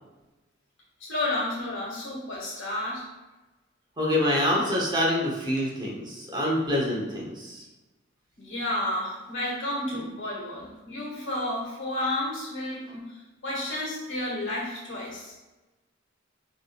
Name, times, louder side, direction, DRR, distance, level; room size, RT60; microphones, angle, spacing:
voice 1, 1.0-3.1 8.4-13.1 13.4-15.3, left 1 dB, 65° left, -4 dB, 1.4 m, -31 dB
voice 2, 4.0-7.6, left 1 dB, 20° right, -4 dB, 0.9 m, -26 dB
6.0 x 2.9 x 2.4 m, 1.1 s
head